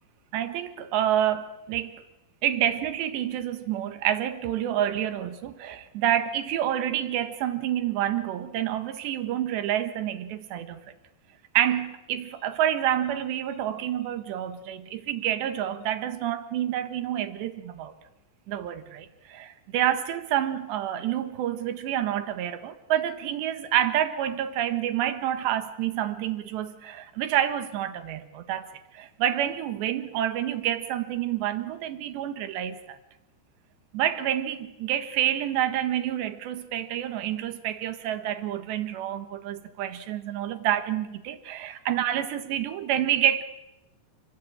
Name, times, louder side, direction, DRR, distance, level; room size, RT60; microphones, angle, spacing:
voice 1, 0.3-1.9 2.4-10.8 11.6-17.9 18.5-28.7 28.9-33.0 33.9-43.4, right 11 dB, 85° right, 3.7 m, -28 dB
29.5 x 21.5 x 8.9 m
omnidirectional pair, 4.8 m